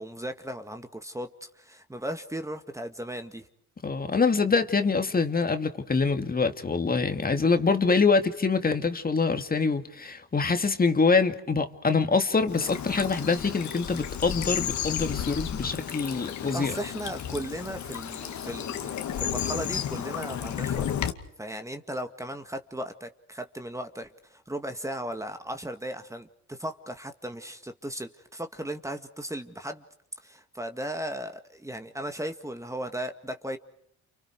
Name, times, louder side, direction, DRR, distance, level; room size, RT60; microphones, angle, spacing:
voice 1, 0.0-3.5 15.7-15.8 16.5-20.9 21.4-29.8 30.2-33.6, right 1 dB, 10° right, 1.9 m, -36 dB
voice 2, 3.8-16.7, left 4 dB, 30° left, 2.4 m, -25 dB
Bird vocalization bird call bird song / Stream, 12.5-21.1, left 9 dB, 70° left, 2.3 m, -33 dB
29.5 x 29.0 x 4.9 m
cardioid pair, 90°, 30 cm